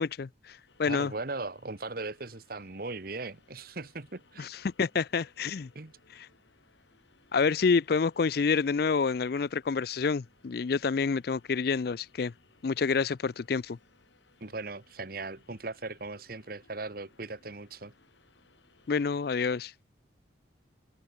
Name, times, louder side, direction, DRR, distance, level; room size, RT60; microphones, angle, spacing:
voice 1, 0.0-1.1 4.4-5.7 7.3-12.3 12.6-13.8 18.9-19.7, left 5 dB, 55° left, 0.4 m, -28 dB
sound 1, 0.7-19.7, left 3 dB, 75° left, 3.2 m, -65 dB
voice 2, 0.9-4.5 5.7-5.9 14.4-17.9, right 3 dB, 50° right, 1.3 m, -38 dB
head